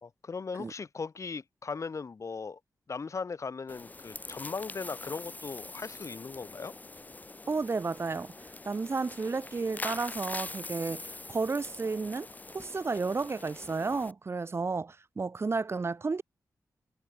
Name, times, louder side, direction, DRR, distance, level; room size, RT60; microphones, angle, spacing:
voice 1, 0.0-2.6 2.9-6.7, left 5 dB, 50° left, 4.4 m, -38 dB
sound 1, 3.7-14.1, left 2 dB, 25° left, 2.5 m, -43 dB
voice 2, 7.5-8.3 8.7-12.3 12.5-16.2, right 4 dB, 40° right, 3.8 m, -32 dB
wide cardioid pair, 140°, 7 cm